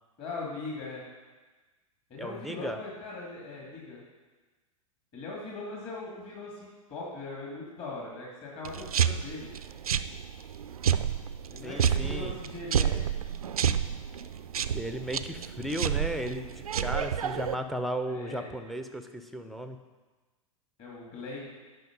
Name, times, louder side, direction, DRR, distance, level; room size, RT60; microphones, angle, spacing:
voice 1, 0.2-1.0 2.1-4.0 5.1-9.5 11.5-13.2 18.1-18.5 20.8-21.5, left 3 dB, 30° left, -3 dB, 2.5 m, -40 dB
voice 2, 2.2-2.8 11.6-12.4 14.7-19.8, equal, ahead, 8 dB, 0.5 m, -35 dB
sound 1, 8.6-17.5, right 8 dB, 80° right, 0.4 m, -30 dB
9.3 x 5.5 x 5.3 m, 1.3 s
figure-of-eight pair, 100°, 18 cm